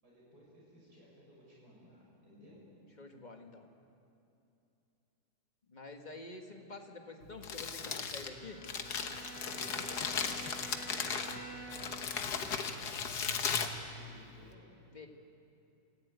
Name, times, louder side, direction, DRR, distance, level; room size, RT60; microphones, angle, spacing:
voice 1, 0.0-2.6 9.5-12.8 13.3-14.7, equal, 85° right, -5 dB, 7.4 m, -58 dB
voice 2, 3.0-3.7 5.7-8.7 14.9-15.1, left 2 dB, 30° left, 3 dB, 1.8 m, -48 dB
Crumpling crinkling, 7.2-14.5, left 6 dB, 85° left, 1.7 m, -37 dB
Bowed string instrument, 8.1-12.1, right 3 dB, 65° left, 4.3 m, -49 dB
26.0 x 14.5 x 9.3 m, 2.8 s
omnidirectional pair, 1.7 m